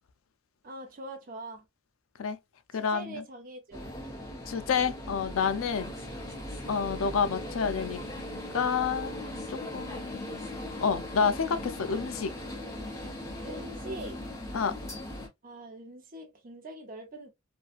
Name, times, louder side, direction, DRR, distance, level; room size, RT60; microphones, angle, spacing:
voice 1, 0.6-1.7 2.7-3.9 5.8-6.1 13.4-14.2 15.4-17.3, right 1 dB, 45° right, 0.7 m, -43 dB
voice 2, 2.7-3.2 4.5-5.9 6.7-8.0 8.5-10.3 10.8-12.3 14.5-14.7, left 6 dB, 85° left, 0.4 m, -29 dB
sound 1, 3.7-15.3, left 1 dB, 15° left, 0.9 m, -39 dB
2.7 x 2.3 x 2.4 m
head